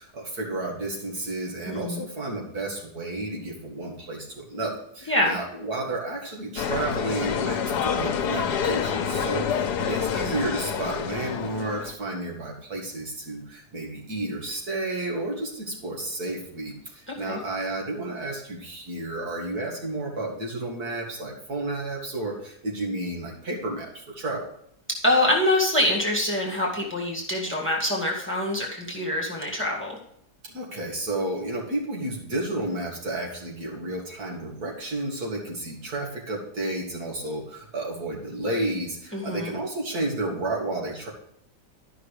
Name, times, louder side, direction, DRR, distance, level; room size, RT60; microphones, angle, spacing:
voice 1, 0.0-24.5 30.4-41.1, right 2 dB, 70° right, -2 dB, 2.7 m, -31 dB
voice 2, 1.7-2.0 5.1-5.4 17.1-17.4 24.9-30.0 39.1-39.6, left 1 dB, 5° left, -2 dB, 1.9 m, -25 dB
sound 1, 6.6-11.9, left 7 dB, 90° left, 1.4 m, -27 dB
12.0 x 5.9 x 4.9 m, 0.68 s
omnidirectional pair, 1.7 m